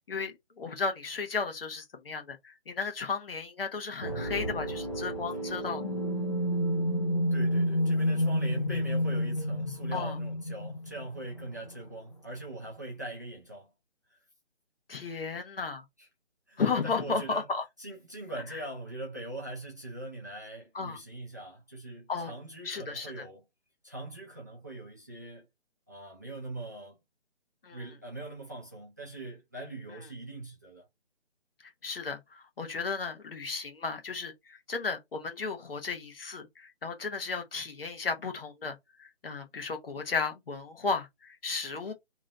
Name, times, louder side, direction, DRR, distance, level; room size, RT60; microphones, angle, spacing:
voice 1, 0.1-5.8 9.9-10.2 14.9-15.8 16.6-17.6 18.5-18.6 20.7-21.0 22.1-22.3 22.6-23.2 27.6-27.9 29.9-30.1 31.6-41.9, left 5 dB, 55° left, 1.1 m, -34 dB
sound 1, 4.0-11.7, equal, 25° left, 0.5 m, -30 dB
voice 2, 7.3-13.7 14.1-14.2 16.0-16.1 16.5-17.5 17.8-23.4 23.8-25.5 25.9-27.0 27.7-30.9, right 2 dB, 15° right, 0.5 m, -42 dB
3.0 x 2.6 x 4.0 m
figure-of-eight pair, 160°, 34 cm